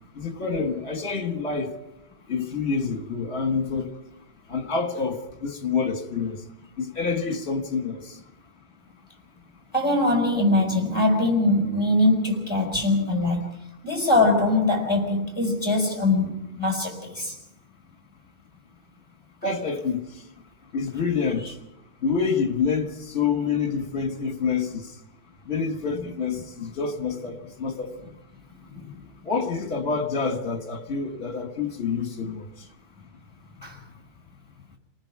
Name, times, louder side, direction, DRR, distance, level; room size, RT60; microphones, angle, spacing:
voice 1, 0.2-1.7 2.3-3.9 4.5-6.4 6.8-8.2 19.4-20.0 20.7-21.5 22.0-24.9 25.5-27.9 29.3-32.5, left 5 dB, 60° left, 1.9 m, -27 dB
voice 2, 9.7-13.5 13.8-17.4 25.9-26.1 28.7-28.9 33.6-33.8, left 2 dB, 20° left, 5.3 m, -22 dB
28.5 x 19.0 x 4.8 m
omnidirectional pair, 1.2 m